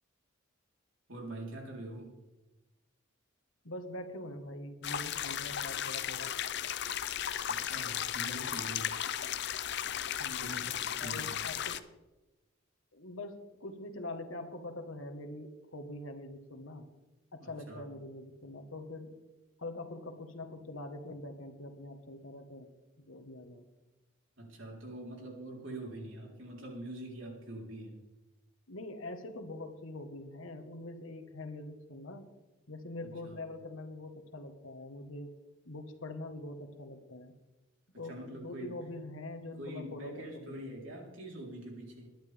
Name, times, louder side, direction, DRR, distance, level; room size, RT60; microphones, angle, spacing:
voice 1, 1.1-2.2 7.5-9.0 10.4-11.4 17.4-17.9 24.4-28.0 33.0-33.4 37.9-38.9 39.6-42.1, right 1 dB, 65° right, -1 dB, 4.0 m, -44 dB
voice 2, 3.6-6.4 10.2-11.8 12.9-16.9 17.3-19.2 19.6-22.7 23.0-23.6 28.7-32.3 32.7-35.3 35.6-37.3 37.9-40.5, left 2 dB, 75° left, 6 dB, 1.6 m, -44 dB
sound 1, 4.8-11.8, left 10 dB, 50° left, 0.6 m, -35 dB
21.0 x 11.5 x 3.6 m, 1.1 s
head